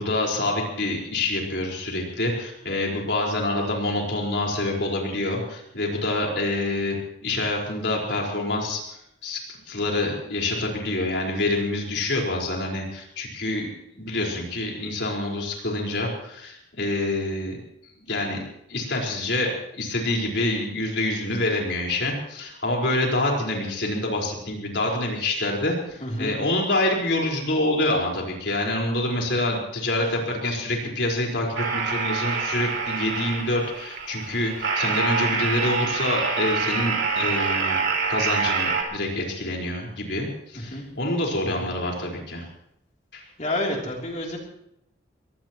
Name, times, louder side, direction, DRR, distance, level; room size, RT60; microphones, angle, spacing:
voice 1, 0.0-7.0 7.2-9.4 9.7-17.6 18.0-18.4 18.7-37.8 38.1-42.4 43.1-43.2, left 1 dB, 70° left, -1 dB, 4.7 m, -26 dB
voice 2, 26.0-26.3 40.7-40.8 41.4-41.5 43.4-44.4, left 1 dB, 40° left, -1 dB, 3.2 m, -29 dB
sound 1, 31.6-38.8, right 5 dB, 75° right, 3.5 m, -26 dB
23.5 x 17.5 x 3.1 m, 0.77 s
head